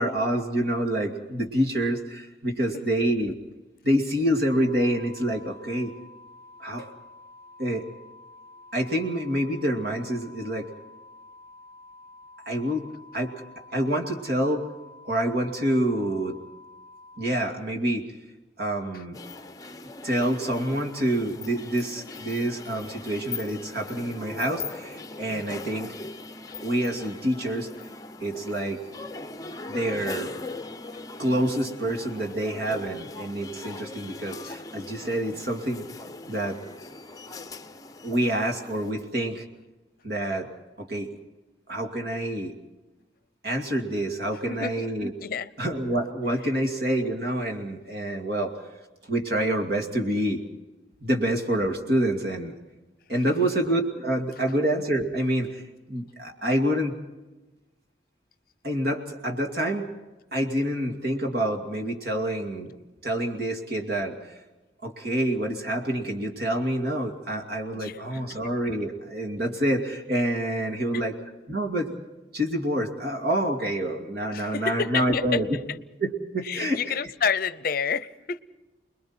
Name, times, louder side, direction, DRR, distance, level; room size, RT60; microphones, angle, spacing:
voice 1, 0.0-3.3 3.8-5.9 6.6-6.9 7.6-7.8 8.7-10.7 12.5-12.9 13.1-13.3 13.7-14.7 15.0-16.4 17.2-18.1 18.6-19.2 20.0-25.9 26.6-27.7 28.2-28.8 29.7-30.3 31.2-35.8 36.3-36.6 38.0-39.4 40.0-40.5 40.8-41.1 41.7-42.5 43.4-45.1 45.6-48.6 49.0-50.4 51.0-52.5 53.1-55.6 55.9-57.0 58.6-59.9 60.3-62.7 63.0-64.2 64.8-71.2 71.5-72.0 72.3-75.6 76.0-76.8, right 1 dB, 60° right, 2.5 m, -27 dB
sound 1, 4.5-17.3, left 2 dB, 5° right, 4.0 m, -49 dB
sound 2, 19.1-38.9, left 3 dB, 20° left, 0.7 m, -40 dB
voice 2, 44.5-44.9 45.2-45.5 53.3-53.4 67.7-68.4 70.9-71.1 74.3-75.4 76.4-78.4, left 6 dB, 55° left, 0.7 m, -30 dB
29.5 x 21.5 x 4.4 m
head